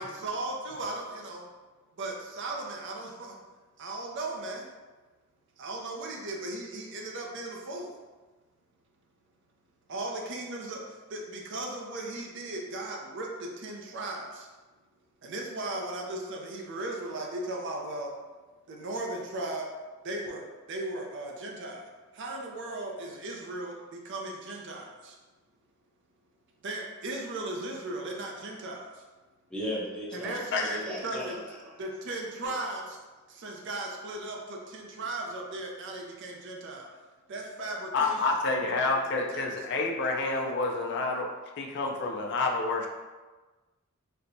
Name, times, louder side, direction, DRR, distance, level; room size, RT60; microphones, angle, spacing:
voice 1, 0.0-1.5 2.0-3.3 3.8-4.7 5.6-8.0 9.9-14.5 15.2-18.1 18.7-19.7 20.0-25.2 26.6-29.0 30.1-31.4 31.8-33.0 33.3-36.9 37.3-38.2 38.5-39.0 39.3-39.5, right 2 dB, 60° right, 0 dB, 0.5 m, -37 dB
voice 2, 29.5-31.7, equal, 5° left, -6 dB, 0.7 m, -37 dB
voice 3, 37.9-41.3 41.6-42.9, left 3 dB, 55° left, 2 dB, 0.4 m, -28 dB
4.3 x 2.2 x 2.6 m, 1.3 s
head